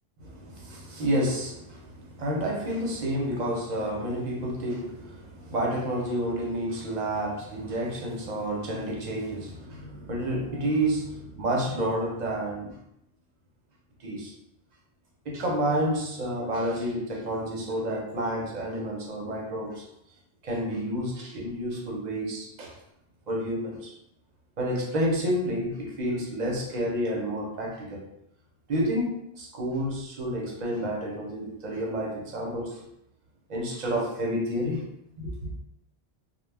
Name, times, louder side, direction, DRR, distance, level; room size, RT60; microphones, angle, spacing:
voice 1, 0.2-12.8 14.0-14.3 15.3-19.9 20.4-22.8 23.3-23.9 24.6-28.0 28.7-32.8 33.5-34.8 35.2-35.5, equal, 50° right, -1 dB, 0.7 m, -30 dB
2.2 x 2.1 x 3.2 m, 0.77 s
omnidirectional pair, 1.1 m